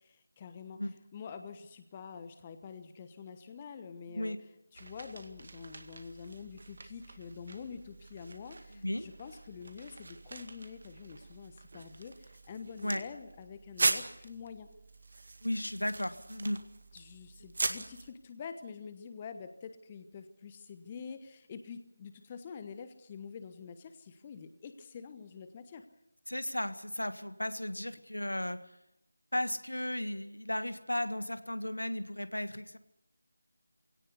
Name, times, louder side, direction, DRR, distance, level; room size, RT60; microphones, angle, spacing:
voice 1, 0.1-4.4 4.7-14.7 16.9-25.8, left 6 dB, 20° left, 9 dB, 1.2 m, -46 dB
sound 1, 4.7-18.1, right 2 dB, 50° right, 2.0 m, -40 dB
voice 2, 8.7-9.1 12.8-13.0 15.4-16.6 26.3-28.6 29.3-32.8, left 1 dB, 80° left, 11 dB, 1.7 m, -35 dB
22.0 x 17.5 x 8.3 m, 0.80 s
figure-of-eight pair, 165°, 0 cm